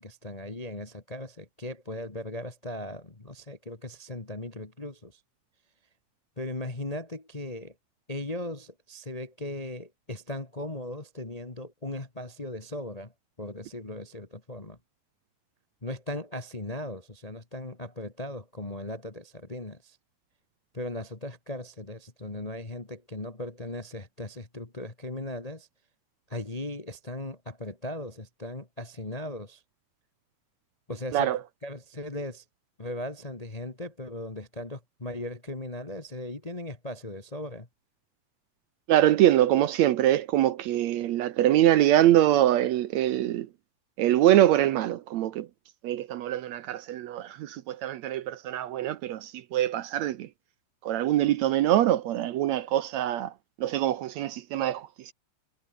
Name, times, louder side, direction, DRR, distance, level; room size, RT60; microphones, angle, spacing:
voice 1, 0.0-5.2 6.4-7.7 8.1-13.1 13.4-14.8 15.8-20.0 20.7-25.7 26.3-29.6 30.9-31.3 31.6-32.4 32.8-37.7, left 1 dB, 20° left, 0.9 m, -38 dB
voice 2, 38.9-43.5 44.0-45.5 45.8-50.3 50.8-53.3 53.6-55.1, right 13 dB, 70° right, 1.9 m, -24 dB
omnidirectional pair, 3.6 m